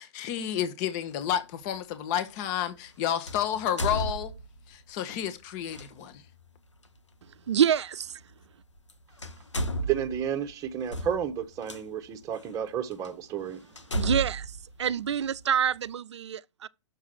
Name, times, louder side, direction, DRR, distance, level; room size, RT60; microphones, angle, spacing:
voice 1, 0.0-4.3 4.7-6.2, left 10 dB, 40° left, 1.1 m, -31 dB
sound 1, 1.2-1.3 3.3-4.7 5.7-5.9 7.7-7.8 8.8-8.9 9.2-11.8 12.5-12.6 13.0-13.1 13.8-15.5, right 1 dB, 90° left, 1.1 m, -33 dB
voice 2, 7.5-8.2 13.9-16.7, right 8 dB, 75° right, 0.4 m, -27 dB
voice 3, 9.9-13.6, right 9 dB, 20° right, 0.9 m, -31 dB
6.8 x 4.8 x 6.0 m
figure-of-eight pair, 115°, 15 cm